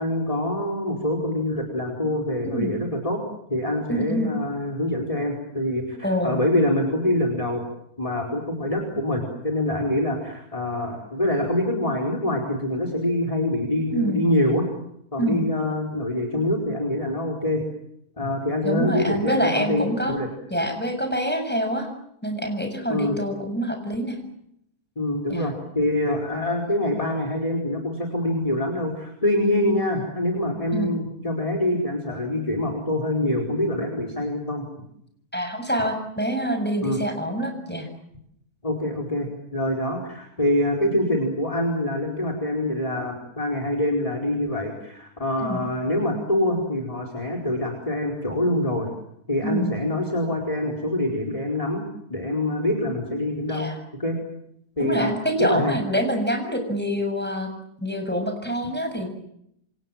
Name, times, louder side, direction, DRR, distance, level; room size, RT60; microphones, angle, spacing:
voice 1, 0.0-3.2 3.5-7.6 8.0-14.7 15.1-17.6 18.2-20.3 22.9-23.2 25.0-34.6 36.8-37.0 38.6-48.9 49.3-53.7 54.0-54.2 54.8-55.1 55.4-55.8, left 1 dB, 20° left, 3 dB, 4.9 m, -25 dB
voice 2, 3.9-4.3 6.0-6.4 13.9-14.3 15.2-15.5 18.6-20.2 20.5-21.9 22.2-24.2 25.3-25.5 30.7-31.0 35.3-37.9 45.4-45.6 49.4-49.8 53.5-53.8 54.8-57.5 57.8-59.1, equal, 5° left, 5 dB, 7.0 m, -26 dB
28.5 x 27.0 x 7.5 m, 0.75 s
omnidirectional pair, 1.6 m